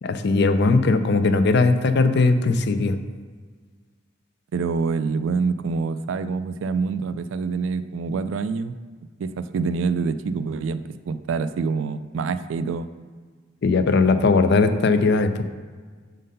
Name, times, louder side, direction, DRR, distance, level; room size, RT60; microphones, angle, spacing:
voice 1, 0.0-3.0 13.6-15.5, left 3 dB, 55° left, 10 dB, 0.4 m, -19 dB
voice 2, 4.5-8.8 9.2-12.9, right 4 dB, 70° right, 12 dB, 0.3 m, -26 dB
6.5 x 3.8 x 5.3 m, 1.5 s
head